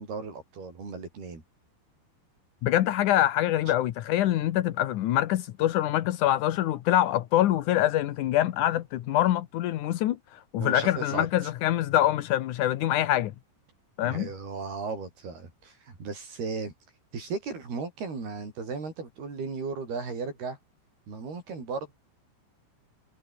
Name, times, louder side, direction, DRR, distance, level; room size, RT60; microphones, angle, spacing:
voice 1, 0.0-1.4 10.6-11.3 14.0-16.7 17.1-20.6 21.1-22.0, right 4 dB, 60° right, 9.6 m, -36 dB
voice 2, 2.6-13.3 14.0-14.3, left 13 dB, 75° left, 1.8 m, -25 dB
omnidirectional pair, 5.0 m